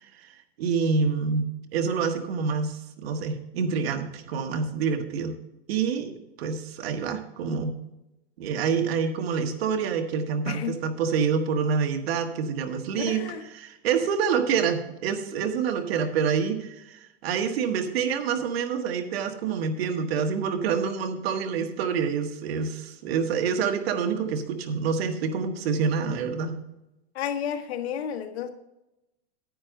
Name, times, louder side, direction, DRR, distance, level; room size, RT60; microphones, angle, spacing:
voice 1, 0.0-5.3 5.7-7.8 8.4-13.2 13.5-26.6, right 6 dB, 70° right, 6 dB, 1.5 m, -27 dB
voice 2, 13.0-13.4 27.1-28.5, left 8 dB, 80° left, 6 dB, 1.4 m, -31 dB
10.0 x 9.1 x 3.8 m, 0.92 s
supercardioid pair, 150°, 32 cm